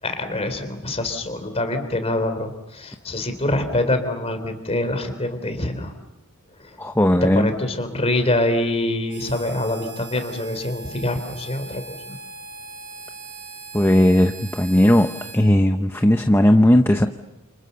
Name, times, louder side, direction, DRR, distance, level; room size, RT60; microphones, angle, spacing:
voice 1, 0.0-5.9 6.6-6.8 7.2-12.2, left 1 dB, 30° left, 8 dB, 3.6 m, -25 dB
voice 2, 6.8-7.5 13.7-17.1, left 1 dB, 10° left, 6 dB, 0.9 m, -17 dB
Harmonica, 9.1-15.4, right 3 dB, 80° right, 6.2 m, -40 dB
29.5 x 29.0 x 7.0 m, 0.97 s
head